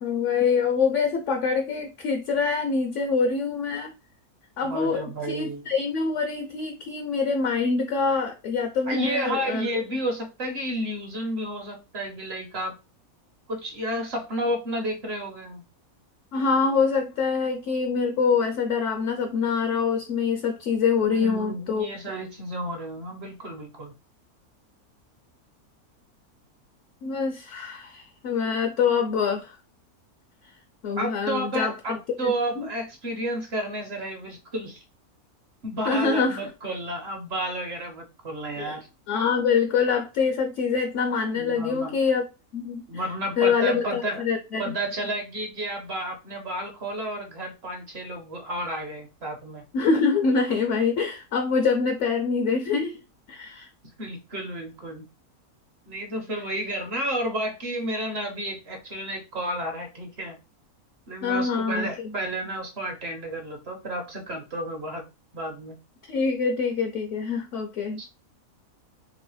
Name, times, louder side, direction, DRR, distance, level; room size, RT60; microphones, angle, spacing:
voice 1, 0.0-3.9 4.6-9.7 16.3-21.9 27.0-29.6 30.8-32.7 35.8-36.4 38.6-38.8 39.1-42.2 42.5-43.0 43.4-44.6 49.7-53.0 53.3-53.7 61.2-61.9 66.0-68.0, left 5 dB, 65° left, 0.8 m, -25 dB
voice 2, 4.6-5.6 8.9-12.7 13.5-15.6 21.1-23.9 31.0-34.8 35.6-38.9 41.3-41.9 42.9-44.2 44.6-49.6 54.0-55.0 55.9-60.4 61.1-65.0 65.3-65.7 68.0-68.1, right 1 dB, 55° right, 0.8 m, -31 dB
3.2 x 3.0 x 3.1 m
omnidirectional pair, 1.6 m